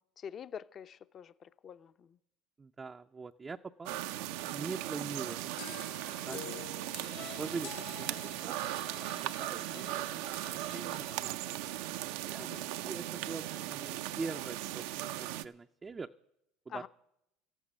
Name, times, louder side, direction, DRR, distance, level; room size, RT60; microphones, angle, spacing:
voice 1, 0.0-2.1 6.3-6.7 12.4-12.6 16.7-16.9, left 8 dB, 35° left, 0.6 m, -46 dB
voice 2, 2.6-4.0 4.4-5.5 6.3-6.4 7.0-8.6 9.2-10.3 10.7-11.4 12.2-16.1 16.7-16.9, right 4 dB, 20° right, 0.5 m, -43 dB
sound 1, 3.9-15.5, right 14 dB, 75° right, 0.6 m, -38 dB
sound 2, 5.6-8.9, left 9 dB, 85° left, 1.9 m, -48 dB
Bowed string instrument, 7.1-11.3, left 11 dB, 65° left, 1.9 m, -53 dB
14.0 x 8.0 x 9.9 m
supercardioid pair, 110°, 0 cm